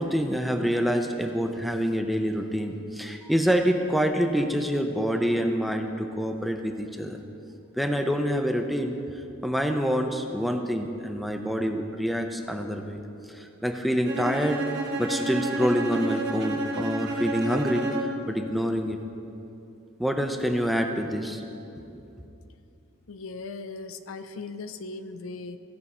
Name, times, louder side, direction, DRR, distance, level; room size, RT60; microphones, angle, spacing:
voice 1, 0.0-7.2 7.8-9.0 9.4-13.0 13.3-14.6 15.0-19.0 20.0-21.4, equal, ahead, 4 dB, 0.5 m, -26 dB
Bowed string instrument, 14.1-18.3, right 1 dB, 55° right, 1.2 m, -30 dB
voice 2, 23.1-25.6, left 3 dB, 75° left, 10 dB, 0.5 m, -38 dB
15.5 x 5.5 x 4.2 m, 2.8 s
head